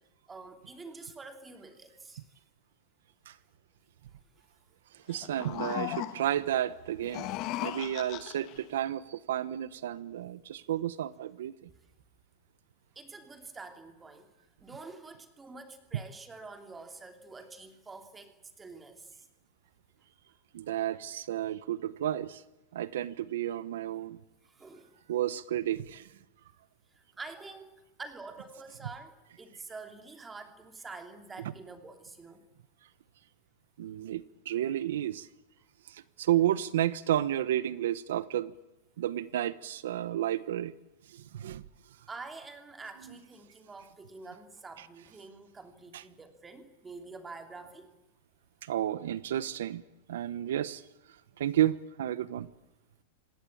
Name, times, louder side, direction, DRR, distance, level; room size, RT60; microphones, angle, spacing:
voice 1, 0.3-2.2 12.9-14.3 14.6-19.3 24.4-25.0 26.9-32.4 42.1-47.9, right 3 dB, 10° right, 7 dB, 2.9 m, -47 dB
voice 2, 4.9-7.3 7.6-11.7 20.5-22.4 22.7-24.2 25.1-26.1 33.8-35.3 35.9-38.5 39.0-40.7 41.1-41.6 43.1-43.2 44.8-44.9 45.9-46.0 48.6-49.8 50.1-50.8 51.4-52.5, right 12 dB, 80° right, 17 dB, 1.0 m, -32 dB
sound 1, 5.1-6.4 7.0-8.6, left 14 dB, 35° left, 1.5 m, -37 dB
26.5 x 19.0 x 8.6 m, 0.98 s
supercardioid pair, 155°, 0 cm